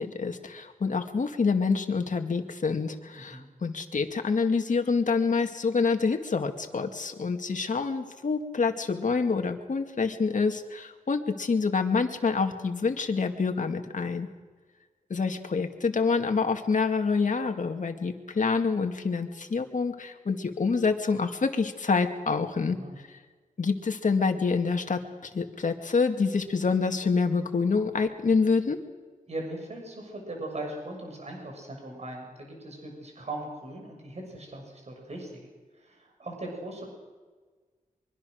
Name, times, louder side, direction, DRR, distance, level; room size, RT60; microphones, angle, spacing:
voice 1, 0.0-14.3 15.1-22.8 23.1-23.2 23.6-28.8, left 4 dB, 65° left, 5 dB, 2.2 m, -27 dB
voice 2, 22.6-23.0 29.3-35.5 35.7-36.9, right 1 dB, 50° right, 1 dB, 6.5 m, -39 dB
24.5 x 24.0 x 6.5 m, 1.4 s
wide cardioid pair, 115°, 14 cm